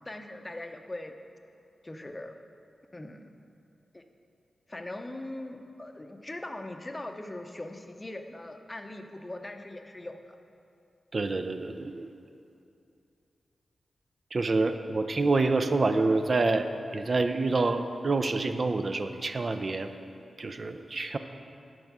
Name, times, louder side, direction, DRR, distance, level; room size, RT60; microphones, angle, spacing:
voice 1, 0.1-1.2 1.8-2.4 2.9-3.3 3.9-4.0 4.7-10.4, left 1 dB, 25° left, 6 dB, 0.6 m, -40 dB
voice 2, 11.1-12.1 14.3-16.7 16.9-19.9 20.4-21.2, right 3 dB, 45° right, 8 dB, 0.4 m, -27 dB
9.0 x 5.3 x 6.0 m, 2.7 s
wide cardioid pair, 80°, 0 cm